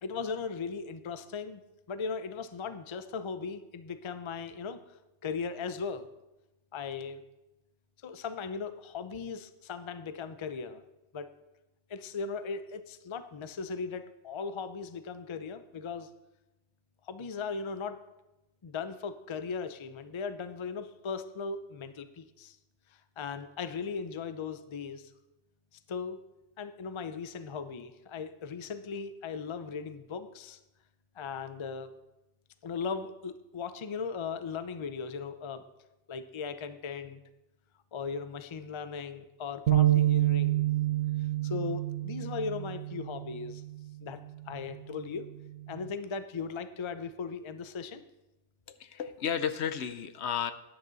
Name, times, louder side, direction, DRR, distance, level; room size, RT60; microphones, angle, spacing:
voice 1, 0.0-1.6 1.9-4.8 5.2-6.1 6.7-7.2 8.0-10.8 11.1-11.3 11.9-16.1 17.1-18.0 18.6-22.6 23.2-25.1 25.9-26.2 26.6-30.6 31.2-31.9 32.6-35.6 36.1-37.2 37.9-40.6 41.4-43.6 44.0-45.3 45.7-48.0, left 5 dB, 40° left, 11 dB, 0.4 m, -38 dB
sound 1, 39.7-43.9 44.4-44.6 45.5-45.9, right 14 dB, 80° right, 1.2 m, -28 dB
voice 2, 48.7-50.5, left 8 dB, 70° left, 12 dB, 0.9 m, -33 dB
12.0 x 9.8 x 4.0 m, 0.97 s
omnidirectional pair, 1.2 m